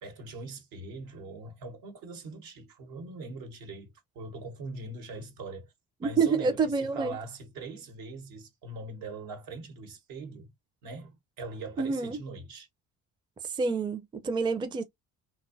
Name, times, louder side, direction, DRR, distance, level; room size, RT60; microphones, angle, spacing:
voice 1, 0.0-5.7 6.0-10.5 10.8-12.7, right 3 dB, 75° right, 1.0 m, -42 dB
voice 2, 6.0-7.2 11.8-12.2 13.4-14.8, right 5 dB, 15° right, 0.4 m, -28 dB
2.6 x 2.1 x 2.6 m
supercardioid pair, 85°, 34 cm